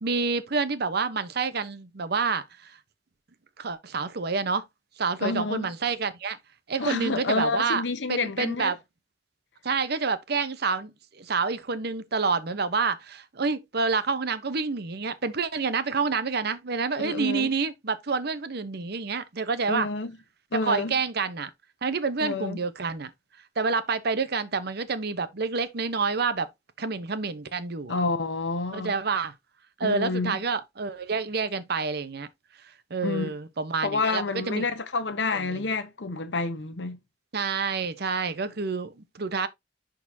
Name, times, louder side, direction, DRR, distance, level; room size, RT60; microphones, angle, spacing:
voice 1, 0.0-2.8 3.6-4.6 5.0-6.4 6.7-7.8 8.1-8.8 9.6-19.9 20.5-21.5 21.8-23.1 23.6-26.5 26.8-28.0 28.7-29.3 29.8-32.3 32.9-34.6 35.5-35.6 37.3-39.5, right 4 dB, 60° right, 0.8 m, -28 dB
voice 2, 5.2-5.7 6.8-8.7 17.0-17.5 19.7-20.1 20.5-21.0 22.2-22.6 27.9-28.9 29.8-30.4 33.0-33.3 33.8-37.0, left 3 dB, 70° left, 0.9 m, -29 dB
11.0 x 4.0 x 2.7 m
head